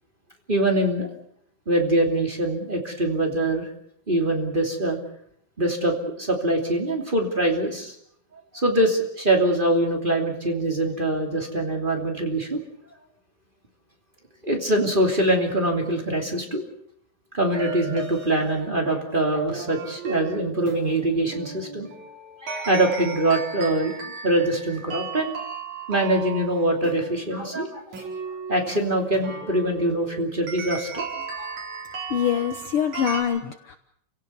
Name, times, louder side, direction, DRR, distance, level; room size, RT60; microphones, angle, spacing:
voice 1, 0.5-1.1 1.7-3.7 4.1-5.0 5.6-7.9 8.5-12.6 14.4-16.6 17.3-21.9 22.4-25.3 25.9-27.8 28.5-31.0 31.4-31.5 32.2-32.4, right 1 dB, 15° right, 2 dB, 2.5 m, -23 dB
sound 1, 17.5-33.2, right 4 dB, 55° right, 5.8 m, -36 dB
voice 2, 32.1-33.8, left 9 dB, 85° left, 8 dB, 1.2 m, -24 dB
29.5 x 17.5 x 6.9 m, 0.69 s
omnidirectional pair, 4.0 m